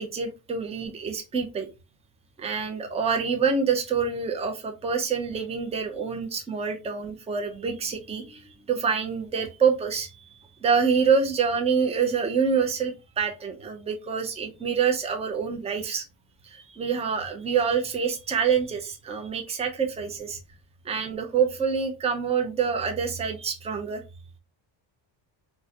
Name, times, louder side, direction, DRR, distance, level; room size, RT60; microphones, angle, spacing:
voice 1, 0.0-1.7 2.4-10.3 10.6-16.0 16.4-20.4 20.8-24.0, right 6 dB, 15° right, 4 dB, 0.4 m, -26 dB
3.7 x 2.1 x 2.6 m, 0.28 s
cardioid pair, 145°, 46 cm